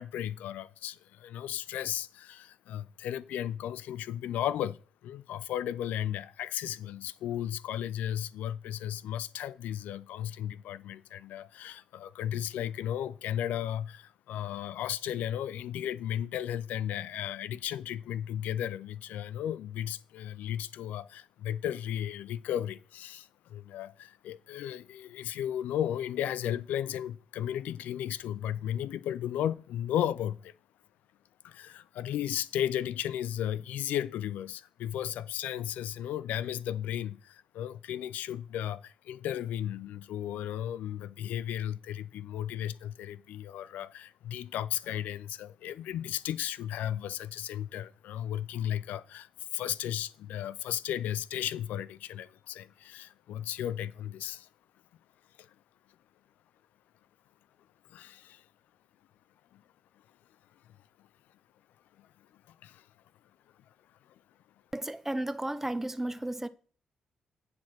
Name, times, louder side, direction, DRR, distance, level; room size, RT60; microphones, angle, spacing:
voice 1, 0.0-30.5 31.4-54.5 55.4-55.6 57.9-58.5 59.5-59.6 60.6-61.1 62.0-62.9 64.0-64.2, left 11 dB, 85° left, 0.4 m, -35 dB
voice 2, 64.7-66.5, right 1 dB, 15° right, 0.7 m, -33 dB
9.4 x 4.6 x 6.0 m
supercardioid pair, 55°, 3 cm